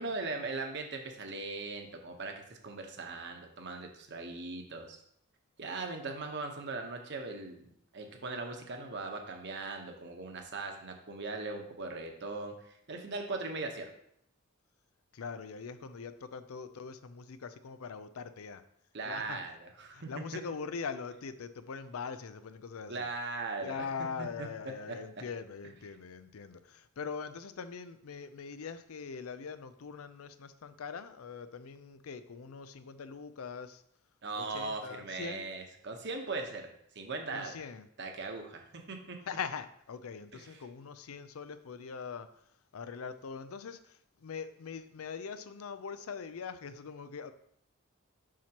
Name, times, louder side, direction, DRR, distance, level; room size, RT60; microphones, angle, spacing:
voice 1, 0.0-5.0 5.6-7.7 7.9-13.9 18.9-20.2 22.9-23.8 24.4-24.5 24.9-25.0 34.2-36.7 36.9-37.5 38.0-39.2 40.3-40.5, right 3 dB, 55° right, 3 dB, 1.1 m, -39 dB
voice 2, 15.1-18.6 19.0-19.4 19.9-23.1 23.6-33.8 34.4-35.4 37.3-37.9 39.3-42.3 42.7-47.3, left 5 dB, 80° left, 12 dB, 0.5 m, -42 dB
7.3 x 5.8 x 2.9 m, 0.70 s
head